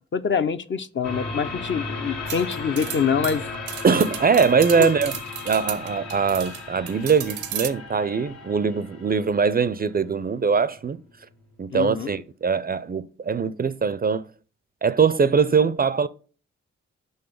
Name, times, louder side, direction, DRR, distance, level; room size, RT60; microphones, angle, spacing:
voice 1, 0.1-3.5 4.8-4.9 11.7-12.1, left 6 dB, 40° left, 0.6 m, -25 dB
sound 1, 1.0-12.2, left 4 dB, 75° left, 1.7 m, -36 dB
sound 2, 2.3-6.6 6.9-7.7, right 10 dB, 85° right, 0.6 m, -34 dB
voice 2, 3.8-5.1 5.5-11.0 11.6-14.2 14.8-16.1, right 5 dB, 30° right, 0.4 m, -22 dB
5.3 x 3.9 x 5.0 m
supercardioid pair, 45°, 29 cm